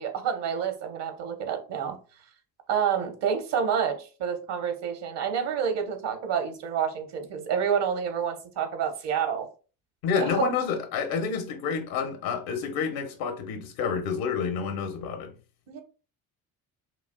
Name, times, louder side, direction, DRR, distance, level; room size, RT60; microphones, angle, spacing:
voice 1, 0.0-2.0 2.7-9.5 10.1-10.5 15.7-15.8, right 7 dB, 60° right, 1.2 m, -28 dB
voice 2, 10.0-15.3, left 6 dB, 80° left, 1.0 m, -29 dB
5.9 x 2.4 x 2.2 m
hypercardioid pair, 60°, 46 cm